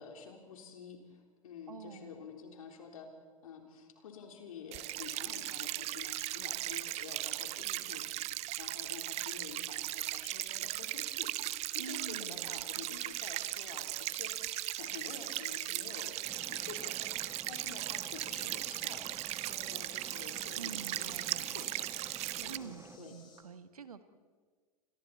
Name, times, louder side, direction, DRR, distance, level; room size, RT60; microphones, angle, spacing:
voice 1, 0.0-3.1 3.4-8.1 8.5-14.5 14.8-21.9 22.4-23.1, left 6 dB, 70° left, 3 dB, 3.9 m, -49 dB
voice 2, 1.7-2.3 11.8-12.9 20.6-21.7 22.5-24.0, right 6 dB, 80° right, 12 dB, 1.5 m, -48 dB
sound 1, 4.7-22.6, right 17 dB, 35° right, 0.6 m, -38 dB
sound 2, 11.4-23.4, left 5 dB, 25° left, 8.0 m, -58 dB
sound 3, 16.2-23.0, right 4 dB, 15° right, 1.2 m, -52 dB
29.0 x 24.5 x 4.3 m, 1.5 s
figure-of-eight pair, 90°, 19 cm